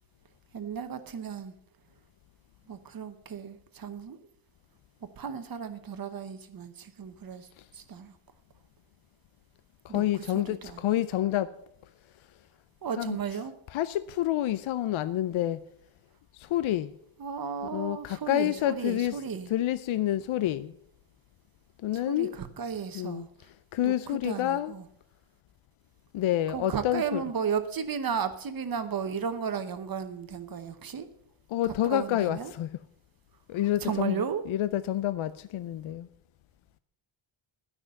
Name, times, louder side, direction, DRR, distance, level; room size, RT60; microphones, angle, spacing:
voice 1, 0.5-1.5 2.7-4.2 5.2-7.5 7.7-8.1 9.9-10.0 10.3-10.8 12.8-13.5 17.2-19.5 21.9-23.3 23.8-23.9 24.2-24.8 26.5-31.1 31.9-32.5 33.8-34.4, right 7 dB, 45° right, 1.0 m, -34 dB
voice 2, 9.8-11.5 13.0-13.2 13.7-15.6 16.3-16.9 17.6-19.2 19.5-20.7 21.8-22.4 22.9-23.3 23.7-24.7 26.1-27.2 31.5-32.7 33.5-36.1, left 13 dB, 70° left, 0.5 m, -28 dB
12.0 x 6.1 x 7.7 m
wide cardioid pair, 170°, 50 cm